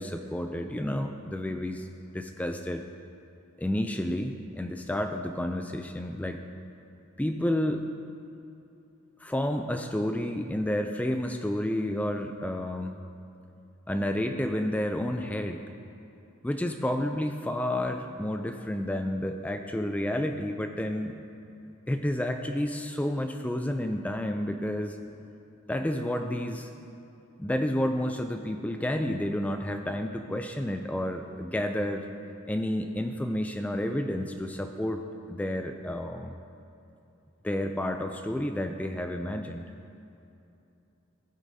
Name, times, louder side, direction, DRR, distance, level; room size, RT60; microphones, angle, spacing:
voice 1, 0.0-1.9 2.1-2.8 3.6-6.4 7.2-7.9 9.2-13.0 13.9-15.6 16.4-21.2 21.9-25.0 25.7-26.7 27.4-32.1 32.5-35.0 35.3-36.4 37.4-39.7, left 1 dB, 5° left, 6 dB, 0.3 m, -30 dB
15.5 x 8.2 x 2.7 m, 2.8 s
head